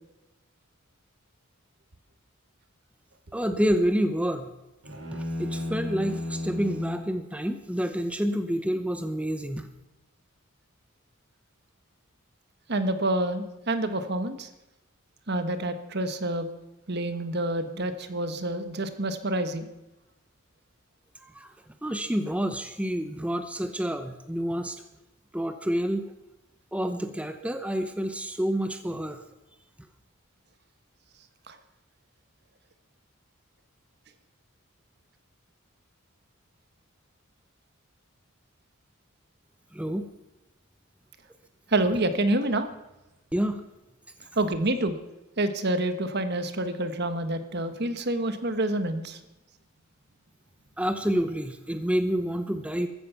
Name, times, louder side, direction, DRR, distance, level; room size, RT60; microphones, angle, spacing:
voice 1, 3.3-4.5 5.1-9.7 21.2-21.5 21.8-24.8 25.3-26.1 26.7-29.2 39.7-40.1 43.3-43.6 50.8-52.9, equal, 5° right, 8 dB, 0.8 m, -28 dB
sound 1, 4.8-7.1, left 2 dB, 70° right, 4.6 m, -33 dB
voice 2, 12.7-14.5 15.3-16.5 16.9-19.7 31.5-31.6 41.7-42.7 44.3-45.0 45.4-49.2, right 1 dB, 50° right, 9 dB, 1.4 m, -27 dB
15.0 x 14.0 x 5.8 m, 0.99 s
head